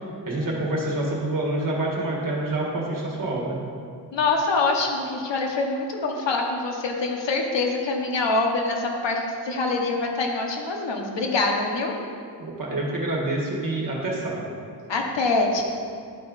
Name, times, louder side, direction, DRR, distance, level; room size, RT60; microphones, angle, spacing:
voice 1, 0.3-3.6 12.4-14.5, right 2 dB, 50° right, -3 dB, 1.7 m, -27 dB
voice 2, 4.1-11.9 14.9-15.6, left 3 dB, 80° left, 0 dB, 1.0 m, -25 dB
11.0 x 4.3 x 4.0 m, 2.2 s
wide cardioid pair, 130°, 43 cm